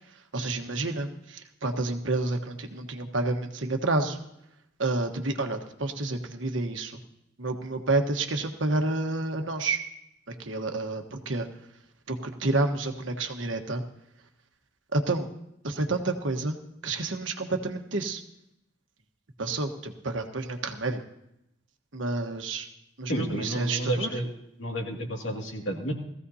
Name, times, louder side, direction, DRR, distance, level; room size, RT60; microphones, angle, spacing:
voice 1, 0.3-4.2 4.8-7.0 7.4-9.8 10.3-11.5 12.1-13.8 14.9-15.3 15.6-16.6 16.8-18.2 19.4-21.0 21.9-22.7 23.0-24.1, right 2 dB, 80° right, 5 dB, 1.2 m, -29 dB
voice 2, 23.1-24.3 24.6-25.9, right 1 dB, 80° left, 1 dB, 2.3 m, -30 dB
18.5 x 15.0 x 2.8 m, 0.80 s
head